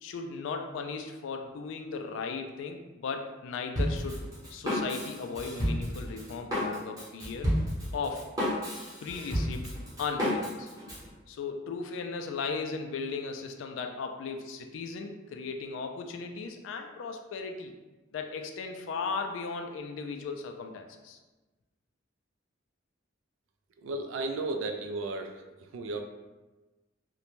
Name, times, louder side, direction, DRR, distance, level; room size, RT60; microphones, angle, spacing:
voice 1, 0.0-4.2 4.5-7.5 7.9-8.2 9.0-9.7 10.0-10.7 11.3-17.7 18.1-21.2, left 4 dB, 70° left, 5 dB, 0.3 m, -36 dB
Drum kit, 3.8-11.1, equal, 20° right, 0.8 m, -31 dB
voice 2, 23.8-26.0, right 2 dB, 80° right, 5 dB, 0.3 m, -34 dB
2.5 x 2.1 x 3.0 m, 1.2 s
head